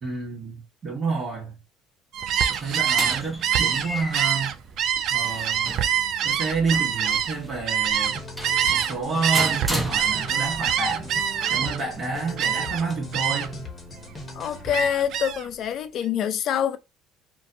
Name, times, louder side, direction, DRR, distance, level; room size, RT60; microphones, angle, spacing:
voice 1, 0.0-1.6 2.5-4.5 5.1-5.8 6.2-8.2 8.7-11.1 11.5-13.5, right 4 dB, 45° right, 1.2 m, -29 dB
Gull seagull, 2.1-8.9 9.2-11.9 12.4-12.8 13.1-13.6 14.0-15.5, right 9 dB, 60° right, 0.3 m, -25 dB
sound 1, 2.2-10.6, right 1 dB, 10° right, 0.7 m, -35 dB
sound 2, 8.0-14.9, left 2 dB, 20° left, 0.9 m, -39 dB
voice 2, 14.3-16.8, left 9 dB, 55° left, 0.5 m, -25 dB
2.5 x 2.3 x 2.6 m
supercardioid pair, 85°, 0 cm